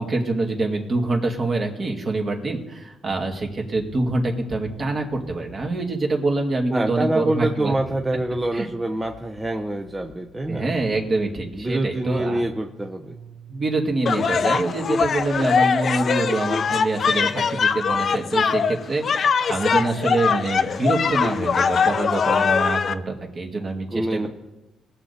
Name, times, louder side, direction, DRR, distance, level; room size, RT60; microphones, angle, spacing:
voice 1, 0.0-7.7 8.5-8.7 10.5-12.4 13.5-24.3, right 2 dB, 45° right, 1 dB, 2.3 m, -25 dB
sound 1, 4.7-5.6 7.4-11.0 12.0-13.7, right 4 dB, 80° right, 2.0 m, -46 dB
voice 2, 6.7-10.7 11.5-13.1 23.9-24.3, right 1 dB, 15° right, 4 dB, 0.7 m, -26 dB
sound 2, 14.1-22.9, left 6 dB, 50° left, 0.6 m, -22 dB
20.0 x 6.7 x 4.2 m, 1.0 s
cardioid pair, 90°, 0 cm